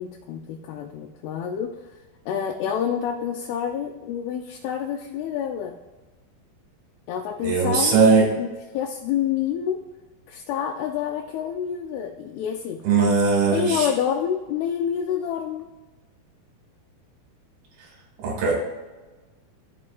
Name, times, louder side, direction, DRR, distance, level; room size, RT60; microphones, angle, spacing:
voice 1, 0.0-1.7 2.3-5.7 7.1-9.8 10.3-12.8 13.4-15.7, left 8 dB, 85° left, 2 dB, 2.5 m, -28 dB
voice 2, 7.4-8.2 12.8-13.9 18.2-18.5, right 4 dB, 70° right, -1 dB, 3.5 m, -19 dB
14.5 x 5.0 x 2.4 m, 1.2 s
omnidirectional pair, 4.6 m